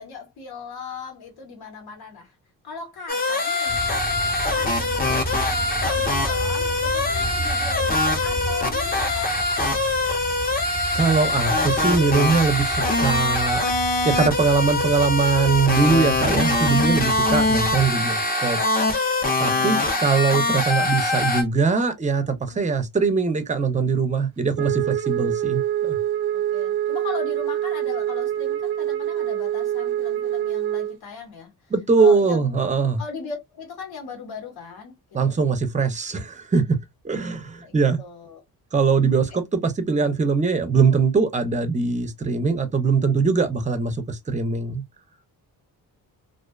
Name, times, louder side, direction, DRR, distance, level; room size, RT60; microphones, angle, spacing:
voice 1, 0.0-2.4 2.6-3.8 4.2-9.6 16.8-17.3 19.5-20.3 22.5-22.8 26.3-31.5 32.0-32.7 33.0-34.9 35.2-35.4 36.5-36.6 37.6-38.4 39.3-39.4, left 5 dB, 80° left, 1.2 m, -38 dB
sound 1, 3.1-21.4, left 2 dB, 25° left, 0.7 m, -23 dB
sound 2, 3.7-17.9, right 1 dB, 5° left, 1.0 m, -33 dB
voice 2, 10.9-13.6 14.0-18.6 19.4-26.0 31.7-33.0 35.1-36.8 37.0-38.0 38.7-44.8, right 4 dB, 20° right, 0.5 m, -21 dB
Wind instrument woodwind instrument, 24.6-31.0, right 11 dB, 75° right, 0.5 m, -25 dB
2.4 x 2.2 x 2.3 m
cardioid pair, 120°, 37 cm